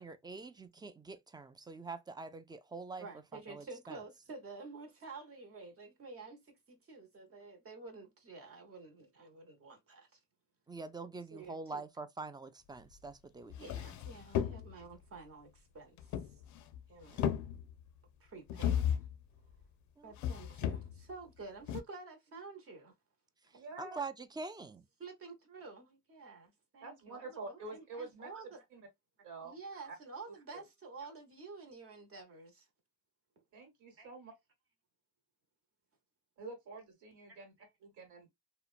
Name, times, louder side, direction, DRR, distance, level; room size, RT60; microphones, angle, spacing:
voice 1, 0.0-3.1 3.5-4.0 10.7-13.7 17.1-17.2 20.0-20.1 23.8-24.9, right 3 dB, 15° right, 0.3 m, -45 dB
voice 2, 3.0-10.2 11.3-11.8 13.5-16.4 16.9-17.2 18.2-19.1 20.0-22.9 23.4-23.6 25.0-28.6 29.4-32.7 34.0-34.1 37.6-37.7, right 3 dB, 50° right, 1.0 m, -50 dB
sound 1, 13.0-13.1 13.5-14.9 16.0-16.8 17.0-17.9 18.5-19.2 20.1-21.1 21.7-21.8, left 9 dB, 70° left, 0.5 m, -35 dB
voice 3, 23.5-24.0 26.8-28.3 28.7-28.8 29.2-29.5 29.9-30.0 30.5-30.7 33.5-34.3 36.4-37.5 37.8-38.3, right 3 dB, 80° right, 1.3 m, -47 dB
2.8 x 2.1 x 2.4 m
cardioid pair, 90°, 30 cm